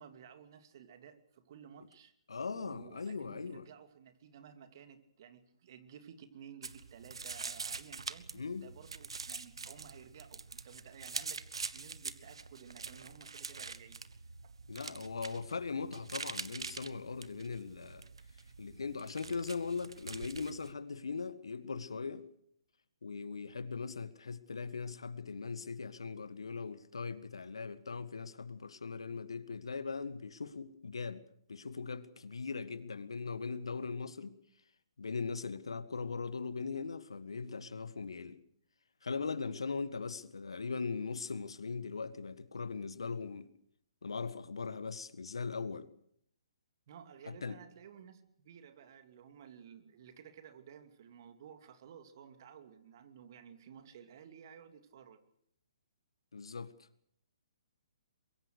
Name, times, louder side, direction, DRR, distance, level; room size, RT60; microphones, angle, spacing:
voice 1, 0.0-2.1 2.5-11.4 11.7-14.0 14.4-14.5 46.9-55.2, right 8 dB, 45° right, 2.6 m, -54 dB
voice 2, 2.3-3.7 8.3-8.7 14.7-18.1 18.6-22.2 23.0-31.2 31.5-34.3 35.0-38.4 39.0-43.5 44.0-45.9 47.3-47.6 56.3-56.7, left 4 dB, 70° left, 1.8 m, -40 dB
sound 1, 6.6-20.7, right 4 dB, 70° right, 1.4 m, -45 dB
23.0 x 23.0 x 6.6 m
figure-of-eight pair, 130°, 3 cm